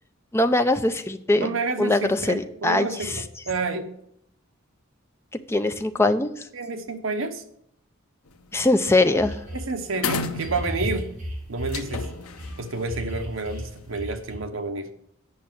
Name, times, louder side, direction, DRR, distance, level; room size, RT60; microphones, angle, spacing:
voice 1, 0.3-1.5 1.8-3.1 5.5-6.3 8.5-9.4, left 2 dB, 10° left, 8 dB, 0.5 m, -21 dB
voice 2, 1.4-3.9 6.5-7.4 9.5-11.1 11.5-12.1 12.6-14.9, right 3 dB, 65° right, 7 dB, 1.0 m, -29 dB
sound 1, 8.3-8.5 8.9-9.1 9.4-9.5 9.9-11.1 11.7-13.7, left 4 dB, 90° left, 0.8 m, -33 dB
sound 2, 8.6-8.7 9.2-9.7 10.4-12.5 12.9-14.4, equal, 35° right, 2.6 m, -34 dB
8.4 x 5.9 x 7.5 m, 0.72 s
head